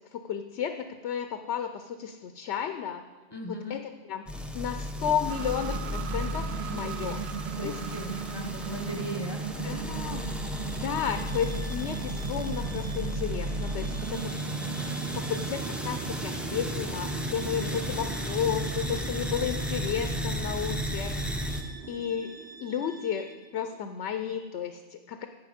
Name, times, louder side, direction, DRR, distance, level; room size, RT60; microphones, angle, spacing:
voice 1, 0.1-3.0 3.5-4.2 4.5-7.2 7.6-7.8 9.6-10.3 10.8-14.3 15.1-21.3 21.9-22.3 22.6-25.3, left 8 dB, 80° left, 8 dB, 0.9 m, -33 dB
voice 2, 3.3-3.8 6.6-7.2 7.5-9.4, equal, 25° left, 3 dB, 0.9 m, -38 dB
sound 1, 4.3-21.6, equal, ahead, 0.5 m, -34 dB
sound 2, 5.3-23.8, right 10 dB, 70° right, 0.8 m, -39 dB
Bowed string instrument, 9.7-23.5, right 2 dB, 25° right, 1.1 m, -48 dB
15.5 x 5.8 x 5.1 m, 1.3 s
omnidirectional pair, 1.2 m